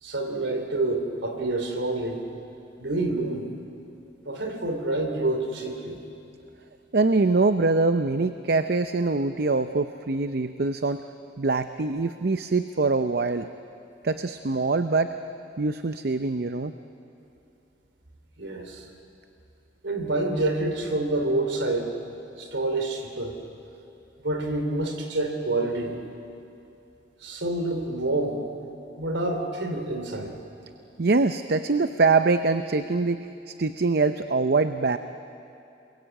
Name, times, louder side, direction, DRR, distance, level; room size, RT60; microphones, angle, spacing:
voice 1, 0.0-2.2 2.8-3.5 4.3-6.0 18.4-18.9 19.8-21.9 22.4-23.4 24.2-26.0 27.2-28.4 29.0-30.4, right 2 dB, 85° right, 5 dB, 3.0 m, -27 dB
voice 2, 6.9-11.0 11.4-13.5 14.0-15.1 15.6-16.7 31.0-35.0, right 3 dB, 55° right, 10 dB, 0.6 m, -24 dB
28.0 x 21.5 x 8.9 m, 2.7 s
head